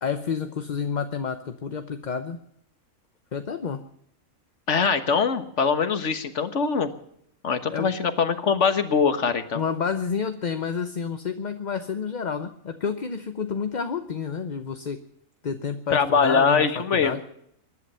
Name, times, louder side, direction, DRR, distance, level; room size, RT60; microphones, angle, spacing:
voice 1, 0.0-2.4 3.3-3.8 7.7-7.9 9.5-15.0 15.4-17.2, left 6 dB, 40° left, 8 dB, 0.8 m, -29 dB
voice 2, 4.7-6.9 7.4-9.6 15.9-17.2, left 5 dB, 60° left, 10 dB, 1.6 m, -22 dB
23.5 x 11.0 x 5.6 m, 0.72 s
omnidirectional pair, 1.4 m